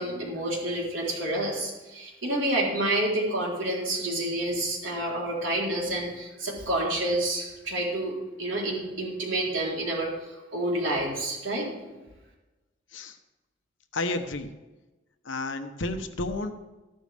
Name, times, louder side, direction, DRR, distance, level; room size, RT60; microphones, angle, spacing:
voice 1, 0.0-10.1 10.5-12.0, right 1 dB, 75° right, -3 dB, 3.8 m, -29 dB
voice 2, 13.9-14.5 15.2-16.6, left 2 dB, 70° left, 7 dB, 1.1 m, -31 dB
13.5 x 12.0 x 3.5 m, 1.1 s
head